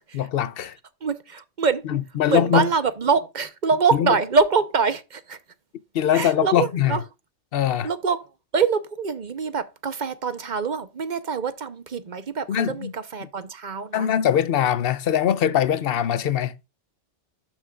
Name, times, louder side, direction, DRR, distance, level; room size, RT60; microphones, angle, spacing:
voice 1, 0.2-0.8 1.9-2.7 3.9-4.2 5.9-7.0 7.5-7.9 12.5-12.9 13.9-16.5, left 9 dB, 60° left, 0.8 m, -22 dB
voice 2, 1.0-1.9 2.3-5.4 6.1-7.0 7.8-8.3 8.5-14.1, right 5 dB, 45° right, 0.9 m, -24 dB
12.0 x 6.1 x 2.4 m
omnidirectional pair, 1.2 m